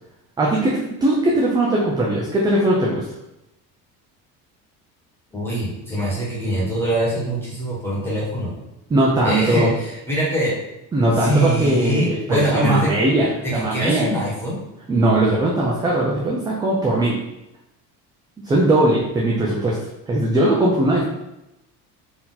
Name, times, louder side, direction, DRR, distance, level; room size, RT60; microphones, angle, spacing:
voice 1, 0.4-3.0 8.9-9.7 10.9-14.1 14.9-17.2 18.4-19.8 20.1-21.0, right 1 dB, 10° right, -4 dB, 0.4 m, -19 dB
voice 2, 5.3-8.6 9.2-10.5 11.1-12.9 13.4-14.6, right 1 dB, 5° left, -7 dB, 1.3 m, -23 dB
4.3 x 2.8 x 3.9 m, 0.90 s
cardioid pair, 180°, 34 cm